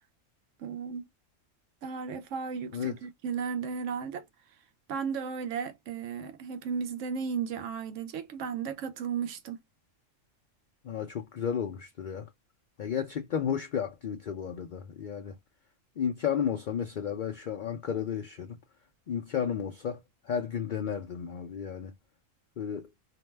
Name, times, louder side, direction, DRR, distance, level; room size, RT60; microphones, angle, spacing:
voice 1, 0.6-1.0 1.8-4.2 4.9-9.6, right 6 dB, 75° right, 0.9 m, -34 dB
voice 2, 10.8-12.3 12.8-15.4 16.0-18.6 19.1-21.9 22.6-22.9, left 8 dB, 60° left, 0.5 m, -33 dB
2.6 x 2.1 x 3.1 m
omnidirectional pair, 1.3 m